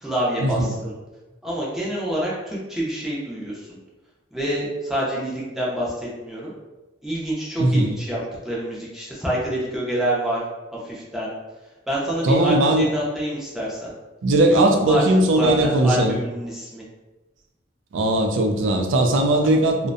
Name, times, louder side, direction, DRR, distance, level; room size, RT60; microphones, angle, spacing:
voice 1, 0.0-0.9 1.4-3.8 4.3-6.5 7.0-10.4 10.7-11.3 11.9-13.9 14.4-14.6 14.9-15.0 15.3-16.8 19.4-19.6, right 1 dB, ahead, -6 dB, 0.5 m, -27 dB
voice 2, 7.6-7.9 12.2-12.9 14.2-16.2 17.9-19.9, right 1 dB, 75° right, 4 dB, 0.4 m, -19 dB
2.5 x 2.1 x 2.5 m, 1.1 s
head